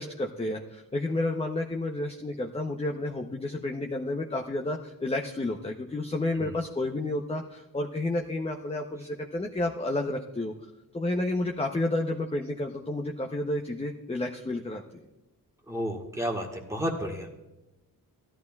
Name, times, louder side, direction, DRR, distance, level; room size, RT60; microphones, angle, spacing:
voice 1, 0.0-10.5 10.9-15.0, left 2 dB, 15° left, 2 dB, 0.7 m, -31 dB
voice 2, 15.7-17.3, equal, 10° right, -1 dB, 1.5 m, -32 dB
16.5 x 11.5 x 2.3 m, 1.0 s
wide cardioid pair, 100°, 35 cm